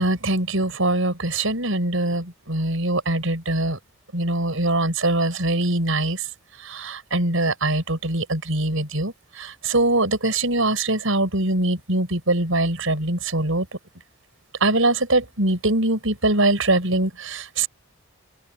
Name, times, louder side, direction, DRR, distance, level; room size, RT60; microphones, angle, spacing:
voice 1, 0.0-3.8 4.1-6.2 6.6-13.7 14.6-17.7, right 2 dB, 70° right, 5.6 m, -22 dB
open air
head